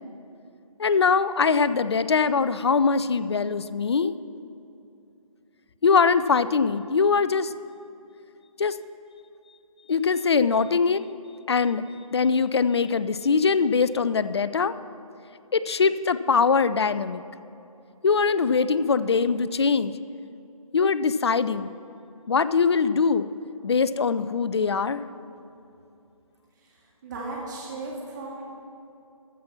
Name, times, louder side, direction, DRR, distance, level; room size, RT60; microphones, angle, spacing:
voice 1, 0.8-4.1 5.8-7.5 8.6-8.8 9.9-11.0 11.5-11.8 12.1-14.7 15.5-17.2 18.0-19.9 20.7-21.7 22.3-23.3 23.6-25.0, left 5 dB, 45° left, 14 dB, 0.4 m, -22 dB
voice 2, 27.0-28.5, right 2 dB, 30° right, -4 dB, 1.9 m, -35 dB
14.5 x 5.9 x 5.8 m, 2.7 s
figure-of-eight pair, 150°, 19 cm